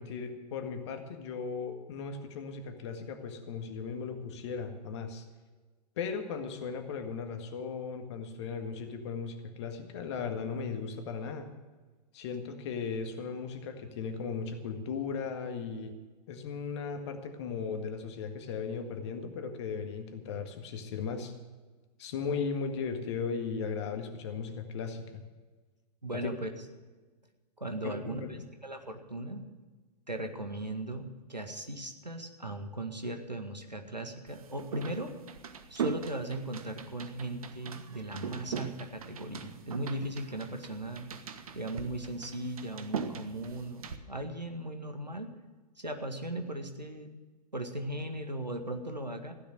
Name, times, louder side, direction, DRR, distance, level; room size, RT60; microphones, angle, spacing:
voice 1, 0.0-5.2 6.0-11.5 12.1-15.9 16.3-21.3 22.0-25.2 26.1-26.2 27.8-28.4, left 5 dB, 40° left, 7 dB, 1.8 m, -37 dB
voice 2, 26.0-26.5 27.6-28.2 28.6-29.5 30.1-35.1 35.7-41.1 41.5-45.3 45.8-47.1 47.5-49.3, right 1 dB, 90° right, 6 dB, 1.8 m, -38 dB
sound 1, 34.3-44.0, right 6 dB, 60° right, 1.2 m, -40 dB
15.5 x 10.5 x 6.3 m, 1.3 s
figure-of-eight pair, 110°, 21 cm